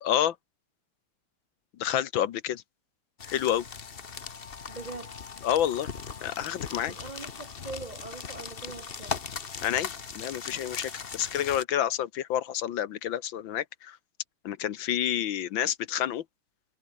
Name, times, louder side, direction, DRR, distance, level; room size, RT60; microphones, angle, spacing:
voice 1, 0.0-0.3 1.8-2.6 3.3-3.6 5.4-5.9 6.2-6.9 9.6-14.0 14.4-16.2, left 11 dB, 70° left, 1.6 m, -29 dB
sound 1, 3.2-11.6, left 6 dB, 35° left, 0.9 m, -39 dB
voice 2, 4.7-5.2 6.9-9.2, right 3 dB, 45° right, 0.5 m, -42 dB
omnidirectional pair, 2.4 m